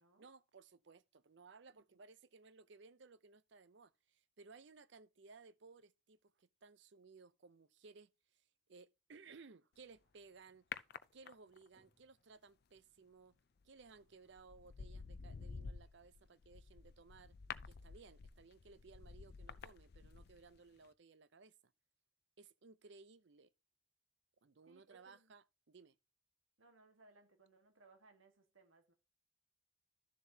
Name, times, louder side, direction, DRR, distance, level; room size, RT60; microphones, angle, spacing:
voice 1, 0.2-10.7 11.1-13.3 13.6-17.3 17.6-21.7 22.4-23.5 24.4-26.0, right 4 dB, 60° right, 0.6 m, -61 dB
sound 1, 10.7-11.7 13.6-13.9 14.4-20.6 20.8-20.9, left 5 dB, 50° left, 0.4 m, -50 dB
sound 2, 11.8-15.7, equal, 40° right, 3.4 m, -84 dB
voice 2, 24.7-25.3 26.6-28.9, right 3 dB, 75° right, 1.6 m, -66 dB
12.5 x 7.1 x 2.8 m
head